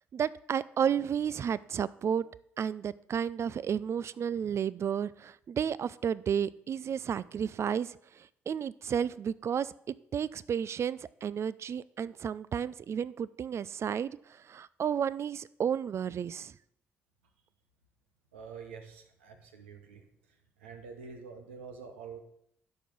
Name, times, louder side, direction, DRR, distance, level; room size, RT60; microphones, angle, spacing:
voice 1, 0.1-2.3 2.6-16.5, right 8 dB, 45° right, 19 dB, 0.4 m, -32 dB
voice 2, 18.3-20.1 20.6-22.2, right 5 dB, 80° right, 5 dB, 1.1 m, -46 dB
12.0 x 5.4 x 6.0 m, 0.75 s
figure-of-eight pair, 40°, 6 cm